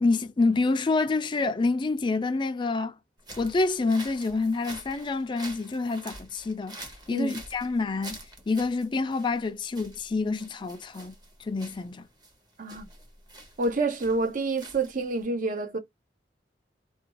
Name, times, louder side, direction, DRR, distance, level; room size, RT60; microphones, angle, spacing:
voice 1, 0.0-2.9 3.4-6.8 7.1-8.2 8.5-11.1 11.4-12.1, left 3 dB, 25° left, 0.4 m, -27 dB
sound 1, 3.2-15.2, right 2 dB, 25° right, 0.9 m, -47 dB
voice 2, 13.6-15.8, right 3 dB, 50° right, 0.6 m, -28 dB
2.5 x 2.2 x 2.8 m
head